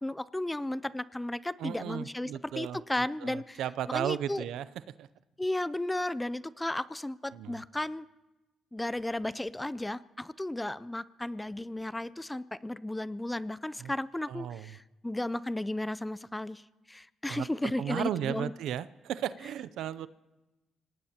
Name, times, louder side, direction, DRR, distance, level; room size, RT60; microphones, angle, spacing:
voice 1, 0.0-2.3 2.6-3.6 3.9-4.4 5.4-8.1 8.7-16.6 16.9-18.5, left 1 dB, 10° left, 17 dB, 0.4 m, -34 dB
voice 2, 1.6-4.7 5.0-5.1 7.3-7.6 13.8-13.9 14.3-14.8 17.3-17.5 17.8-20.1, right 10 dB, 80° right, 16 dB, 0.5 m, -35 dB
26.0 x 18.5 x 2.9 m, 1.1 s
cardioid pair, 90°, 0 cm